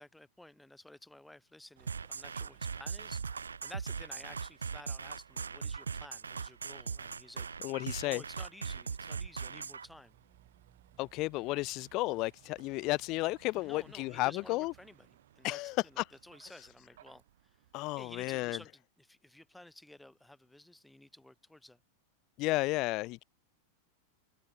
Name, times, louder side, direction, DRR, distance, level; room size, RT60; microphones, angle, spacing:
voice 1, 0.0-7.5 8.0-10.2 13.5-15.1 15.4-17.2 18.0-21.8, left 1 dB, 5° left, 2.1 m, -53 dB
Vehicle, 1.8-18.7, right 13 dB, 60° right, 3.5 m, -63 dB
sound 1, 1.9-9.9, right 5 dB, 75° right, 0.3 m, -39 dB
voice 2, 7.6-8.2 11.0-14.7 15.4-16.0 17.7-18.6 22.4-23.2, left 21 dB, 40° left, 0.3 m, -33 dB
sound 2, 8.2-16.8, right 11 dB, 30° right, 4.8 m, -67 dB
figure-of-eight pair, 90°, 0 cm